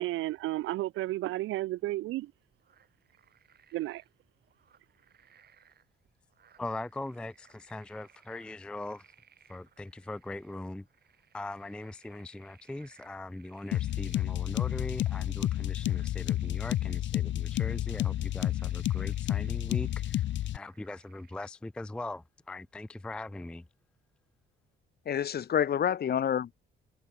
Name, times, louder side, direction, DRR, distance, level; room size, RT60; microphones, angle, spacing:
voice 1, 0.0-2.3 3.7-4.0, right 17 dB, 85° right, 0.6 m, -32 dB
sound 1, 2.3-21.5, right 8 dB, 55° right, 5.8 m, -63 dB
voice 2, 6.6-9.0 9.5-10.8 11.3-20.2 20.5-23.6, left 2 dB, 5° left, 0.3 m, -40 dB
sound 2, 13.7-20.6, left 13 dB, 70° left, 0.7 m, -30 dB
voice 3, 25.0-26.5, left 9 dB, 50° left, 1.2 m, -28 dB
cardioid pair, 90°, 20 cm